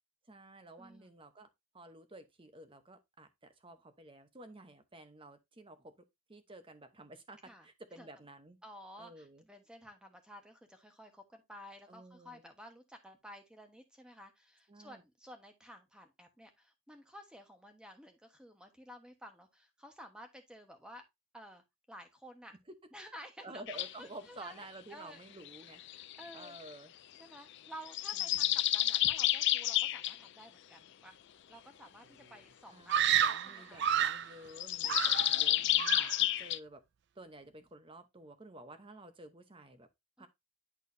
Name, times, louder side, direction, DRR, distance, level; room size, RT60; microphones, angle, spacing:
voice 1, 0.3-1.5 1.7-3.3 3.6-5.9 6.3-8.6 9.0-9.4 11.9-12.4 14.7-15.0 23.4-26.1 26.3-26.9 28.3-28.6 32.7-36.8 37.2-39.9 40.2-40.3, right 2 dB, 25° right, 0.9 m, -52 dB
voice 2, 0.8-1.1 7.4-7.7 8.0-8.1 8.6-21.0 21.3-22.5 22.9-23.6 24.0-25.2 25.7-26.6 27.2-31.2 31.5-33.8 35.3-35.8 40.2-40.3, equal, 5° right, 1.1 m, -53 dB
sound 1, 23.7-23.9 25.5-26.7 27.9-30.2 34.6-36.6, left 14 dB, 55° left, 0.3 m, -30 dB
Screaming, 32.9-34.3 34.8-35.5 35.8-36.2, right 9 dB, 55° right, 0.4 m, -30 dB
10.5 x 4.6 x 2.6 m
head